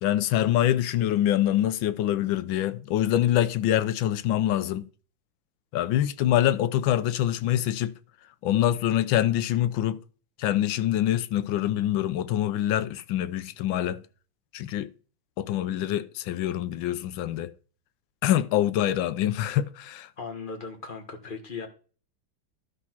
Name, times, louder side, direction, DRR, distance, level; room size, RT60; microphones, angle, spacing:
voice 1, 0.0-4.9 5.7-7.9 8.4-10.0 10.4-14.0 14.5-14.9 15.4-17.5 18.2-20.1, left 12 dB, 75° left, 1.4 m, -25 dB
voice 2, 20.2-21.7, left 4 dB, 30° left, 1.2 m, -37 dB
12.0 x 4.2 x 5.9 m
omnidirectional pair, 2.2 m